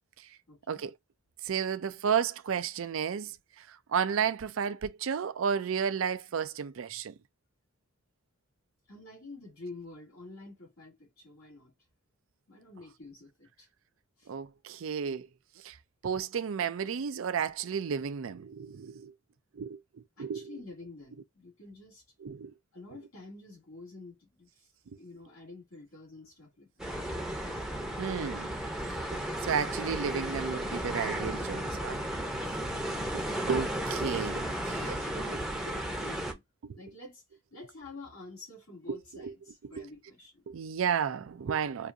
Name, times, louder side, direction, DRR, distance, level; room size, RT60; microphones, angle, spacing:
voice 1, 0.5-0.8 8.9-11.7 12.5-13.7 14.2-14.3 20.2-22.0 22.7-24.5 24.9-26.9 31.5-31.9 33.0-33.3 34.8-36.4 36.8-37.2 37.5-40.4, left 2 dB, 80° left, 2.4 m, -48 dB
voice 2, 1.4-3.3 3.6-7.1 14.3-15.3 15.6-15.8 16.0-19.1 19.6-20.5 22.2-22.5 28.0-28.5 29.1-32.0 33.1-34.9 38.9-39.3 39.8-39.9 40.5-41.9, right 7 dB, 65° right, 0.4 m, -32 dB
sound 1, 26.8-36.3, right 1 dB, ahead, 0.7 m, -34 dB
4.7 x 2.6 x 2.6 m
head